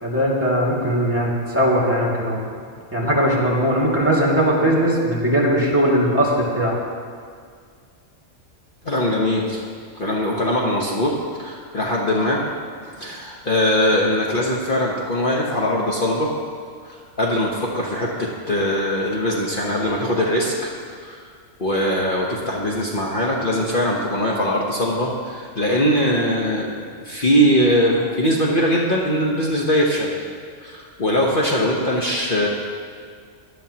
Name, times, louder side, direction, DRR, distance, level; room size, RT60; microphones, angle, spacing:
voice 1, 0.0-2.4 2.9-6.7, equal, 10° right, -4 dB, 2.2 m, -19 dB
voice 2, 8.8-9.7 9.9-12.5 12.8-16.3 16.8-21.2 21.6-30.2 30.6-32.5, equal, 45° left, -3 dB, 1.2 m, -21 dB
18.0 x 11.5 x 2.9 m, 2.1 s
omnidirectional pair, 1.3 m